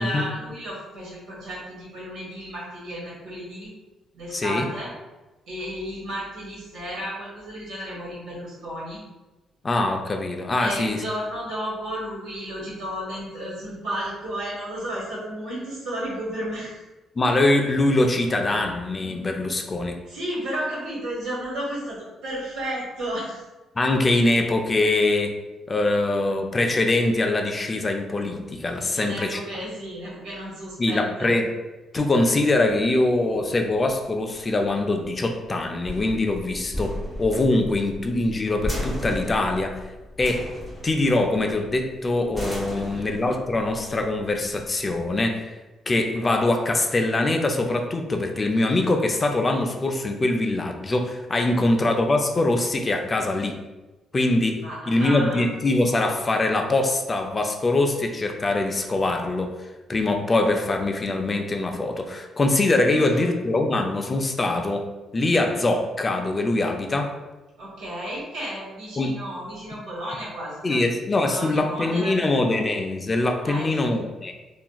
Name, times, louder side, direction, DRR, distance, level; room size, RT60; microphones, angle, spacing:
voice 1, 0.0-3.7 4.1-4.9 5.5-9.0 10.6-16.8 20.0-23.4 28.9-31.3 42.7-43.1 51.5-51.7 54.6-55.4 62.9-63.3 67.6-70.8 71.2-72.2 72.5-72.6 73.4-74.0, equal, 85° right, -5 dB, 1.1 m, -33 dB
voice 2, 4.3-4.7 9.6-11.0 17.2-19.9 23.8-25.3 25.7-29.4 30.8-31.5 31.9-39.8 40.2-40.5 40.8-45.5 45.9-53.6 54.1-59.5 59.9-64.8 65.1-67.1 69.0-69.2 70.6-74.3, left 2 dB, 30° left, 3 dB, 0.3 m, -23 dB
sound 1, 32.2-45.3, equal, ahead, 0.8 m, -36 dB
2.9 x 2.3 x 2.2 m, 1.1 s
cardioid pair, 105°, 0 cm